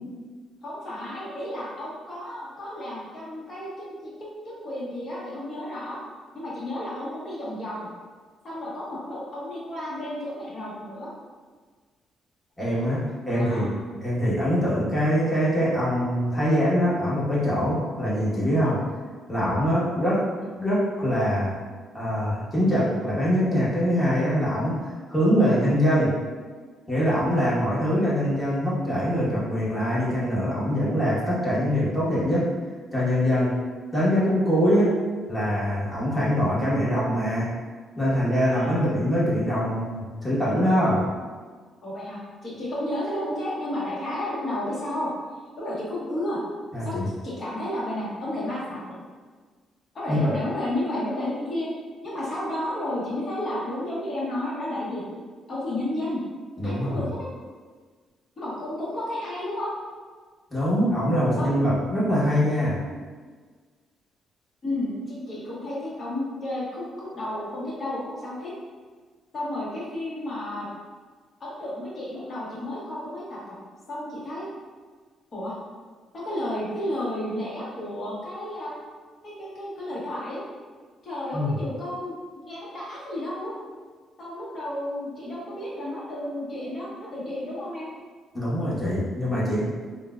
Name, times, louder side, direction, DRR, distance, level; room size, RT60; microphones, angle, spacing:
voice 1, 0.6-4.3 4.6-6.0 6.3-7.9 8.4-11.1 13.3-13.7 20.4-20.5 38.5-38.8 41.8-45.1 45.6-46.4 46.8-49.0 49.9-51.7 52.0-55.0 55.5-56.2 56.6-57.3 58.4-59.7 61.4-61.6 64.6-68.5 69.3-70.7 71.4-73.6 73.9-74.5 75.3-75.6 76.1-78.7 79.2-80.4 81.0-83.5 84.2-87.9, left 1 dB, 45° left, -7 dB, 1.3 m, -32 dB
voice 2, 12.6-13.7 14.0-18.8 19.3-20.2 20.6-21.5 21.9-26.1 26.9-32.5 32.9-33.5 33.9-34.9 35.3-37.5 38.0-41.0 46.7-47.1 50.1-50.2 56.6-57.0 60.5-62.8 81.3-81.5 88.3-89.6, equal, 15° left, -9 dB, 1.4 m, -23 dB
3.7 x 2.3 x 2.4 m, 1.5 s
cardioid pair, 90°, 0 cm